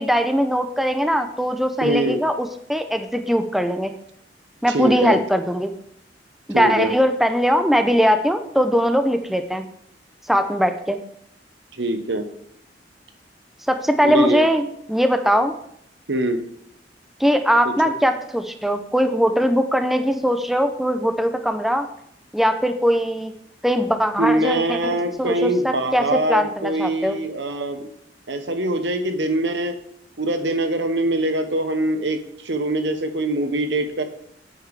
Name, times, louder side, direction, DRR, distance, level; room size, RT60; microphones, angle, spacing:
voice 1, 0.0-3.9 4.6-5.7 6.5-9.6 10.3-11.0 13.7-15.5 17.2-21.9 22.3-23.3 23.6-24.6 25.2-27.2, equal, ahead, 7 dB, 0.6 m, -20 dB
voice 2, 1.8-2.2 4.7-5.2 6.5-7.0 11.7-12.2 14.0-14.5 16.1-16.4 17.6-17.7 24.2-27.9 28.3-29.8 30.2-34.0, right 1 dB, 85° right, 8 dB, 1.1 m, -23 dB
9.0 x 7.1 x 4.8 m, 0.72 s
head